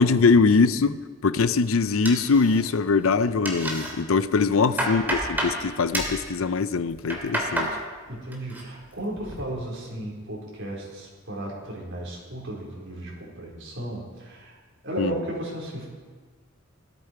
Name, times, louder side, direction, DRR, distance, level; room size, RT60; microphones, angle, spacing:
voice 1, 0.0-7.7 15.0-15.1, left 4 dB, 80° left, 14 dB, 0.6 m, -22 dB
sound 1, 2.0-2.9 3.2-3.9 4.4-5.6 5.9-6.2 6.9-7.7 8.1-8.6 9.0-9.4, right 1 dB, 10° right, 2.5 m, -29 dB
voice 2, 4.5-4.9 8.1-14.6 14.8-15.9, right 1 dB, 60° right, -3 dB, 4.6 m, -35 dB
17.0 x 13.0 x 4.7 m, 1.4 s
head